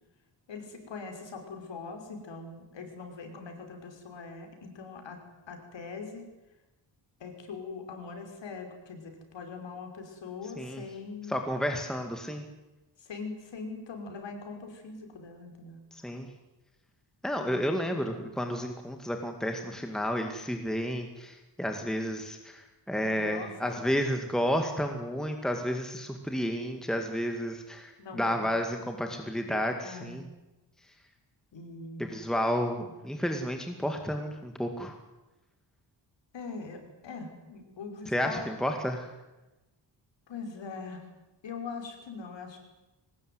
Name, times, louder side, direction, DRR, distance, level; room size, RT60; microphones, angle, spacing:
voice 1, 0.5-5.2 5.5-6.3 7.2-11.4 13.0-15.8 17.5-17.7 23.0-23.8 28.0-28.5 29.8-30.3 31.5-32.1 36.3-38.5 40.3-41.0 41.4-42.6, left 4 dB, 75° left, 4 dB, 5.7 m, -42 dB
voice 2, 11.3-12.5 15.9-16.3 17.2-30.2 32.0-35.0 38.1-39.1, equal, ahead, 4 dB, 2.1 m, -31 dB
23.0 x 20.0 x 9.6 m, 1.0 s
wide cardioid pair, 170°, 44 cm